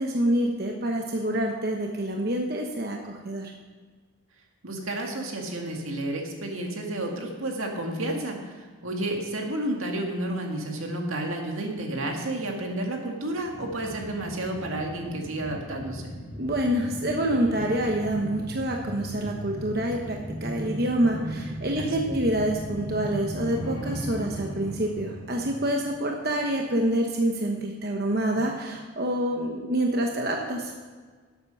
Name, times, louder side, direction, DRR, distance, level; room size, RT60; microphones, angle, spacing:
voice 1, 0.0-3.5 16.4-30.7, right 1 dB, 45° right, 1 dB, 1.0 m, -27 dB
voice 2, 4.6-16.1 21.8-22.2, right 1 dB, 80° right, 1 dB, 2.0 m, -31 dB
sound 1, 13.3-26.5 26.9-27.0, equal, 20° left, 2.0 m, -37 dB
12.0 x 8.2 x 5.7 m, 1.5 s
head